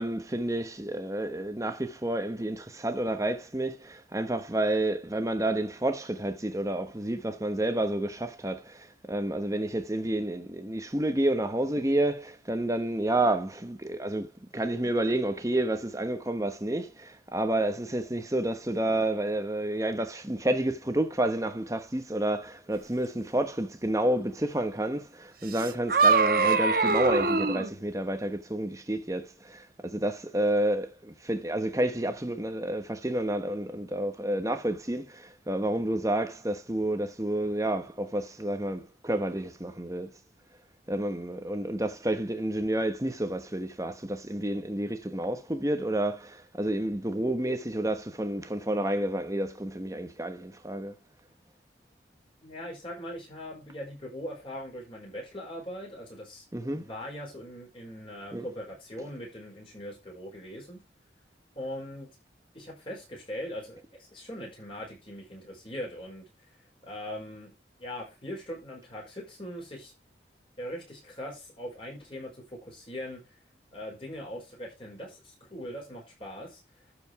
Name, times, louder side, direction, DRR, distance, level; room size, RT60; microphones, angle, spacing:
voice 1, 0.0-40.1 40.9-51.0 56.5-56.9 58.3-58.5 59.0-59.1, right 1 dB, 15° right, 1.0 m, -30 dB
sound 1, 25.5-27.7, right 4 dB, 50° right, 1.1 m, -23 dB
voice 2, 52.4-56.4 56.7-60.8 61.5-62.1 62.5-66.2 66.8-67.5 67.8-69.9 70.6-73.2 73.7-76.6, equal, 30° left, 5.2 m, -40 dB
12.5 x 5.2 x 4.8 m
head